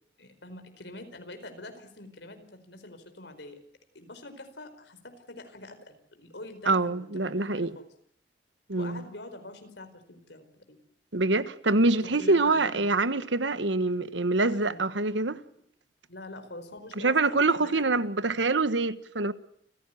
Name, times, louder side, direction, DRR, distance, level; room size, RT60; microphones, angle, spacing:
voice 1, 0.2-3.6 3.9-7.9 8.8-10.8 12.0-12.8 14.4-14.8 16.1-18.1, left 2 dB, 70° left, 4.8 m, -45 dB
voice 2, 6.7-7.7 8.7-9.0 11.1-15.4 17.0-19.3, right 3 dB, 85° right, 1.4 m, -25 dB
29.5 x 16.0 x 9.3 m
head